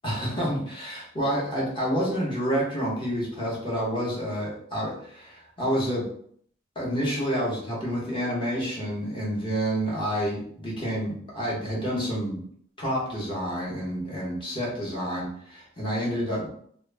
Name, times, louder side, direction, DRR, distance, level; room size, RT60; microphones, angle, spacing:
voice 1, 0.0-6.1 6.8-12.4 12.8-16.5, equal, 25° left, -5 dB, 0.8 m, -29 dB
2.2 x 2.0 x 3.2 m, 0.62 s
head